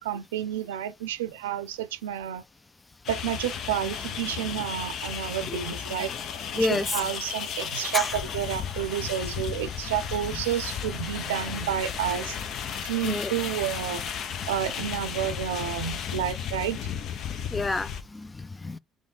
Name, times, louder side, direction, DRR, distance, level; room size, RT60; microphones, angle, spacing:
voice 1, 0.0-2.4 3.1-6.1 6.5-12.4 12.8-14.0 14.5-16.9, right 11 dB, 90° right, 0.4 m, -30 dB
sound 1, 3.0-18.0, left 8 dB, 65° left, 0.8 m, -34 dB
voice 2, 6.6-7.0 7.9-8.1 13.0-13.3 17.5-18.8, left 3 dB, 25° left, 0.5 m, -29 dB
3.4 x 3.1 x 4.1 m
hypercardioid pair, 60°, 0 cm